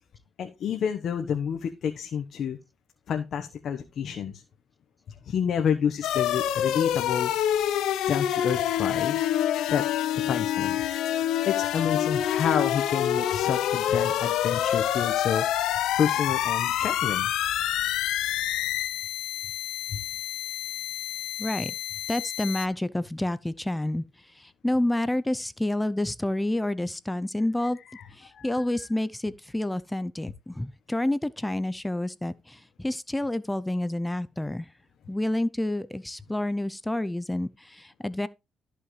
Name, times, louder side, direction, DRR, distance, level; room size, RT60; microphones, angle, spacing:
voice 1, 0.4-2.6 3.1-4.3 5.2-7.5 8.1-9.2 9.7-9.8 10.1-10.8 11.4-17.3 19.9-20.0 27.9-28.0 28.3-28.6, left 8 dB, 65° left, 1.1 m, -29 dB
sound 1, 6.0-22.7, left 11 dB, 85° left, 0.7 m, -27 dB
voice 2, 21.4-21.8 22.1-27.8 28.1-34.7 35.1-38.3, left 1 dB, 10° left, 0.5 m, -29 dB
13.5 x 5.7 x 3.2 m
cardioid pair, 90°, 0 cm